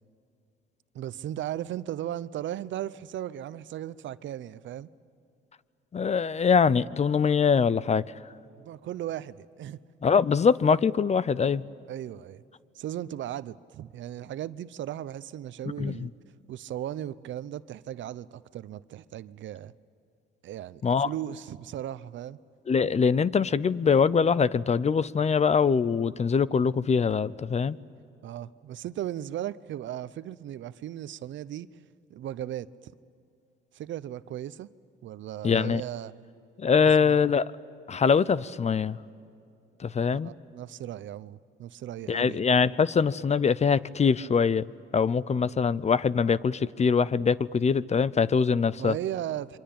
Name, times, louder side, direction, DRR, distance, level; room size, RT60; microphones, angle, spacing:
voice 1, 0.9-4.9 8.6-9.8 11.9-12.4 12.7-16.1 16.5-19.7 20.4-22.4 28.2-31.8 32.1-32.9 33.7-34.7 35.0-36.1 36.8-37.2 40.1-42.4 48.8-49.6, right 12 dB, 70° right, 0.7 m, -36 dB
voice 2, 5.9-8.0 10.0-11.6 15.8-16.1 20.8-21.1 22.7-27.8 35.4-35.8 36.6-37.5 37.9-39.0 39.8-40.3 42.1-44.6 44.9-49.0, left 6 dB, 35° left, 0.6 m, -23 dB
27.5 x 24.5 x 8.8 m
cardioid pair, 90°, 20 cm